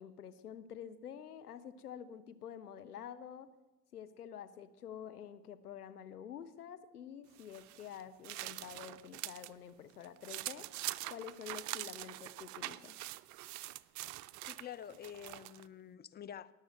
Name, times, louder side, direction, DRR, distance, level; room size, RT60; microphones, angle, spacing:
voice 1, 0.0-3.5 3.9-10.7 11.1-13.0, left 8 dB, 85° left, 0.9 m, -48 dB
sound 1, 7.4-9.5 9.9-15.7, right 18 dB, 40° right, 0.5 m, -44 dB
voice 2, 14.4-16.5, left 9 dB, 25° left, 0.5 m, -48 dB
19.0 x 6.5 x 7.6 m
figure-of-eight pair, 70°, 45 cm